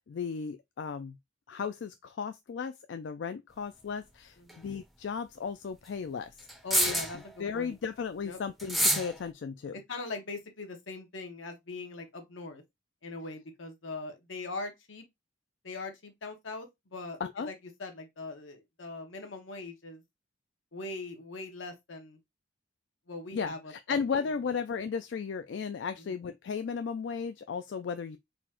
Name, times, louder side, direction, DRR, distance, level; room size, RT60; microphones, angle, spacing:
voice 1, 0.1-1.2 1.5-6.3 6.9-7.0 7.4-9.8 17.2-17.5 23.3-28.2, left 6 dB, 65° left, 0.3 m, -35 dB
sound 1, 4.5-4.6 6.5-7.2 8.6-9.1, equal, ahead, 0.5 m, -27 dB
voice 2, 6.6-7.7 8.2-8.4 9.9-12.6 13.0-15.0 15.6-17.2 17.5-17.6 17.8-20.0 20.7-22.2 23.1-24.0 26.0-26.2, left 3 dB, 80° left, 1.1 m, -41 dB
4.1 x 2.5 x 4.2 m
head